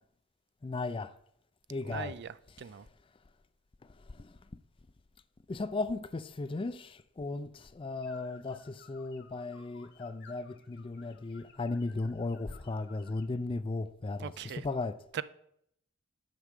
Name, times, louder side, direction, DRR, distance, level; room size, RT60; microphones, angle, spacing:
voice 1, 0.6-1.1 1.7-2.1 3.8-4.6 5.5-15.0, left 3 dB, 25° left, 0.4 m, -36 dB
voice 2, 1.8-2.9 14.2-14.7 15.1-15.2, right 8 dB, 50° right, 0.4 m, -40 dB
sound 1, 8.0-13.4, left 6 dB, 50° left, 1.1 m, -58 dB
8.1 x 6.2 x 7.4 m
head